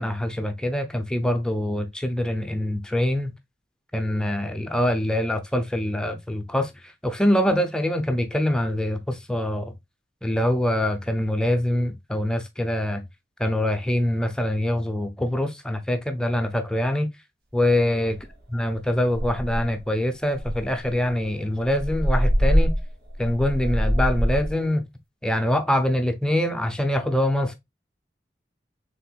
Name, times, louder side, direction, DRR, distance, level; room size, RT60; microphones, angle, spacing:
voice 1, 0.0-3.3 3.9-6.7 7.0-9.7 10.2-13.0 13.4-17.1 17.5-18.1 18.5-22.7 23.2-24.8 25.2-27.5, left 1 dB, 5° left, 0.5 m, -24 dB
sound 1, 17.7-17.8 18.1-18.4 18.7-18.8 19.1-19.8 20.3-24.5, equal, 60° right, 1.3 m, -24 dB
4.3 x 3.4 x 2.3 m
head